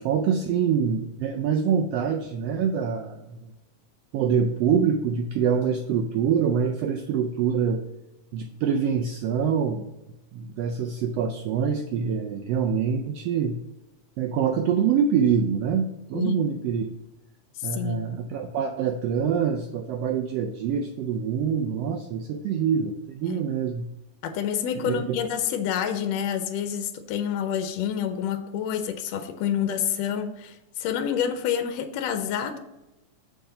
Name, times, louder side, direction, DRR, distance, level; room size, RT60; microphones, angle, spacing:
voice 1, 0.0-3.5 4.1-7.8 8.3-9.9 10.3-13.6 14.2-16.8 17.6-23.9 24.8-25.2, right 7 dB, 85° right, 5 dB, 1.4 m, -25 dB
voice 2, 17.7-18.1 23.2-23.4 24.2-32.6, left 8 dB, 75° left, 8 dB, 1.6 m, -28 dB
6.9 x 4.8 x 5.4 m, 0.96 s
omnidirectional pair, 3.4 m